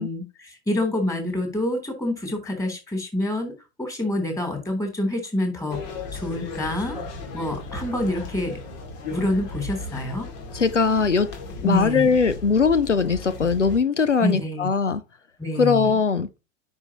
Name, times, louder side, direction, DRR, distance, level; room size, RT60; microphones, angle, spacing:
voice 1, 0.0-3.5 3.8-5.8 6.1-8.6 9.1-10.3 11.6-12.1 14.2-14.7 15.4-15.9, left 1 dB, 10° left, 3.3 m, -27 dB
sound 1, 5.7-13.8, left 3 dB, 45° left, 2.4 m, -36 dB
voice 2, 10.5-11.3 11.6-15.0 15.6-16.3, left 5 dB, 90° left, 0.6 m, -20 dB
9.7 x 5.4 x 2.9 m
figure-of-eight pair, 85°, 35 cm